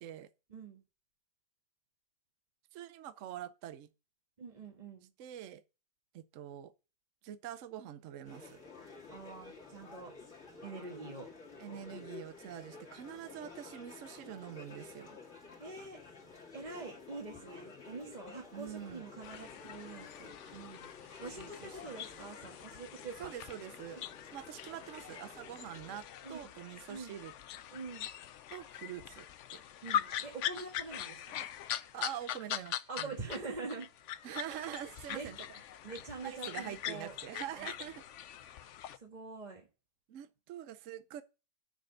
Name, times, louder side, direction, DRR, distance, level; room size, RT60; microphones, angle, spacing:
voice 1, 0.5-0.8 4.4-5.1 9.1-10.1 10.6-11.3 15.6-16.0 16.5-20.9 21.2-23.3 26.2-26.5 26.9-27.1 27.7-28.1 29.8-31.4 32.9-33.9 35.1-35.3 35.8-37.2 37.5-37.7 38.9-39.7, right 4 dB, 25° right, 1.5 m, -45 dB
voice 2, 2.7-3.9 5.2-5.6 6.1-6.7 7.2-8.6 11.6-15.2 18.5-19.1 21.3-22.0 23.2-24.0 24.3-27.3 28.5-29.6 31.9-33.1 34.2-35.4 36.2-38.0 38.4-38.7 40.1-41.2, right 11 dB, 65° right, 0.8 m, -45 dB
sound 1, 8.2-26.0, left 4 dB, 40° left, 2.3 m, -52 dB
sound 2, 19.2-33.4 33.7-39.0, left 10 dB, 90° left, 0.6 m, -42 dB
6.5 x 6.5 x 6.6 m
omnidirectional pair, 1.9 m